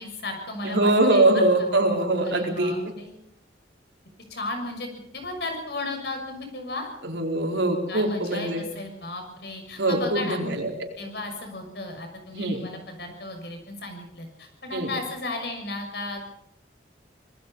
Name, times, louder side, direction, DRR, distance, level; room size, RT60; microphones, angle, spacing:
voice 1, 0.0-1.7 2.2-3.1 4.3-4.9 5.1-6.9 7.9-10.4 11.0-16.2, left 2 dB, 65° left, 4 dB, 6.5 m, -35 dB
voice 2, 0.6-2.7 7.0-8.6 9.8-10.7 12.3-12.6 14.7-14.9, right 2 dB, 90° right, 2 dB, 4.6 m, -22 dB
26.0 x 20.0 x 5.6 m, 0.77 s
head